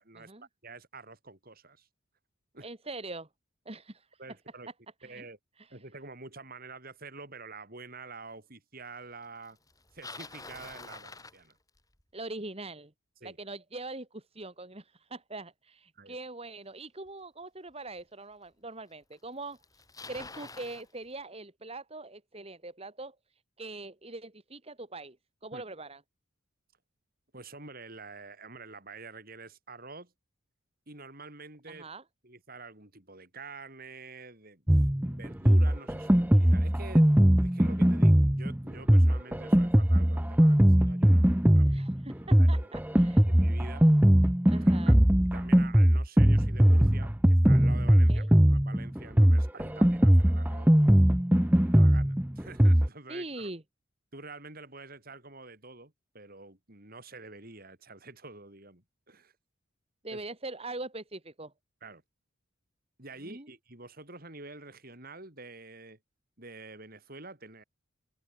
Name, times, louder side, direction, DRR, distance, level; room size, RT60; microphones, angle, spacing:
voice 1, 0.0-0.3 0.6-1.9 2.5-2.7 4.2-4.7 5.0-5.4 5.7-9.6 9.9-11.6 13.2-13.4 15.9-16.2 25.5-25.6 27.3-30.1 30.9-31.9 32.2-37.1 37.4-41.2 41.5-41.8 42.4-42.7 43.3-43.9 44.5-44.9 45.3-51.0 51.4-53.5 54.1-59.3 60.1-60.2 61.8-62.0 63.0-66.0 66.4-67.6, right 3 dB, 45° right, 5.7 m, -47 dB
voice 2, 2.6-3.3 3.6-4.2 5.0-5.2 5.6-5.7 12.1-12.9 13.2-19.6 20.1-23.1 23.6-25.2 25.4-26.0 31.7-32.0 41.6-43.3 44.4-45.0 48.1-48.3 53.1-53.6 60.0-61.5 63.3-63.5, right 2 dB, 30° right, 2.9 m, -42 dB
Bicycle, 9.7-12.0 17.1-17.2 18.0-18.1 19.1-19.2 19.4-20.9, left 3 dB, 15° left, 6.2 m, -46 dB
Drum kit, 34.7-52.9, equal, 10° right, 0.8 m, -21 dB
head